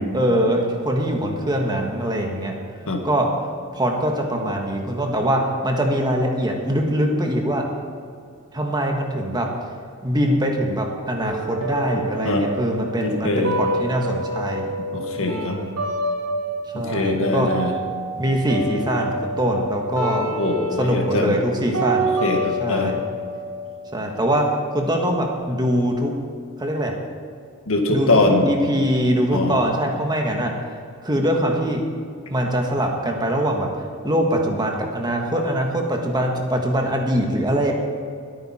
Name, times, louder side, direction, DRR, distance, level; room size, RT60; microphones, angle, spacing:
voice 1, 0.1-2.5 3.0-3.3 3.7-7.6 8.5-9.5 10.0-14.8 15.2-15.7 16.7-17.5 18.2-20.2 20.8-22.1 22.6-23.0 23.9-26.1 26.6-26.9 27.9-30.5 31.0-31.8 32.3-33.7 34.0-37.7, equal, 20° right, 1 dB, 1.6 m, -23 dB
sound 1, 11.2-17.2 17.4-25.2, right 1 dB, 90° right, 3.6 m, -28 dB
voice 2, 13.0-13.6 14.9-15.6 16.7-17.7 20.2-21.4 22.2-23.0 27.7-28.5 29.3-29.6, left 2 dB, 65° left, 3 dB, 1.8 m, -22 dB
21.0 x 9.1 x 4.4 m, 2.3 s
head